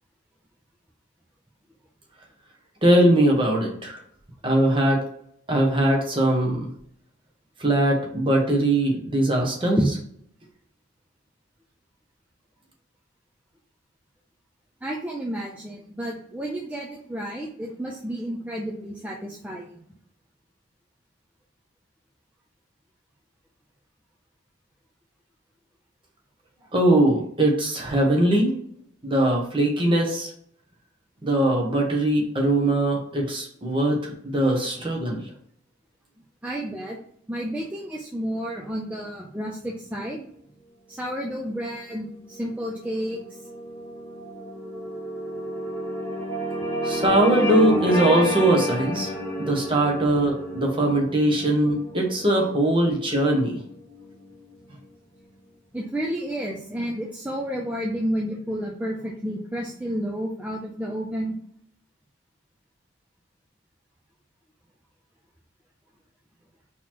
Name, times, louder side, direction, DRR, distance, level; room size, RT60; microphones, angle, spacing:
voice 1, 2.8-4.0 4.4-5.0 5.5-6.7 7.6-9.8 26.7-28.5 29.0-30.3 31.2-35.2 46.8-53.6, right 1 dB, 25° right, 0 dB, 1.0 m, -21 dB
voice 2, 14.8-19.7 36.4-37.0 37.3-40.3 40.9-43.5 55.7-61.4, equal, 5° right, -3 dB, 0.4 m, -31 dB
sound 1, 41.8-54.4, equal, 10° left, 0.9 m, -31 dB
4.0 x 3.0 x 4.2 m, 0.66 s
head